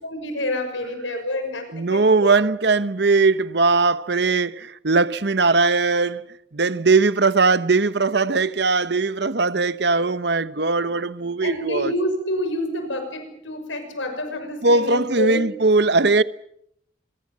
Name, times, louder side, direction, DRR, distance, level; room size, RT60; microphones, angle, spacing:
voice 1, 0.0-2.4 11.4-15.6, left 1 dB, 85° left, 6.2 m, -28 dB
voice 2, 1.7-11.9 14.6-16.2, right 3 dB, 60° right, 0.9 m, -20 dB
26.5 x 23.0 x 7.5 m
head